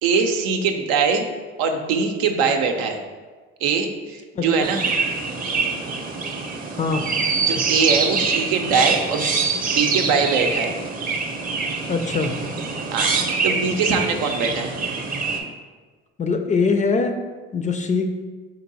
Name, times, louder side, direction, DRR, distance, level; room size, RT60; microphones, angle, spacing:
voice 1, 0.0-1.3 1.6-3.0 3.6-4.8 7.4-9.3 9.7-10.7 12.9-13.1 13.4-14.7, right 5 dB, 80° right, 4 dB, 0.6 m, -22 dB
Chirp tweet, 4.6-15.4, right 4 dB, 25° right, 0.7 m, -24 dB
voice 2, 11.9-12.3 16.2-17.2 17.5-18.1, left 4 dB, 25° left, 6 dB, 0.4 m, -22 dB
4.5 x 2.7 x 3.9 m, 1.4 s
supercardioid pair, 80°, 31 cm